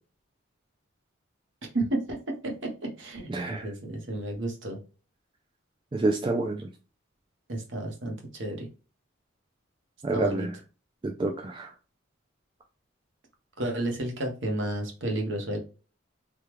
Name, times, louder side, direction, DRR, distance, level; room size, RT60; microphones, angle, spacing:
voice 1, 1.7-2.2 2.4-4.8 7.5-8.7 10.1-10.5 13.6-15.6, right 1 dB, 65° right, 2 dB, 1.0 m, -31 dB
voice 2, 3.3-3.6 5.9-6.7 10.0-10.5 11.0-11.7, right 2 dB, 25° right, 2 dB, 0.3 m, -28 dB
3.5 x 2.3 x 3.0 m, 0.34 s
head